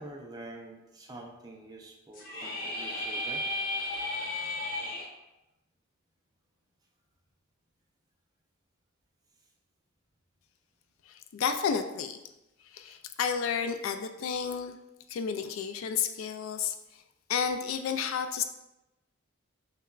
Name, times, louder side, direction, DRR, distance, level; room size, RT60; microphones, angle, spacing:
voice 1, 0.0-3.4, right 1 dB, 20° right, 0 dB, 0.5 m, -46 dB
sound 1, 2.1-5.0, left 2 dB, 45° left, 0.7 m, -34 dB
voice 2, 11.1-12.2 12.6-14.8 15.1-16.7 17.3-18.4, left 7 dB, 65° left, 7 dB, 0.3 m, -31 dB
6.6 x 2.2 x 2.4 m, 0.96 s
head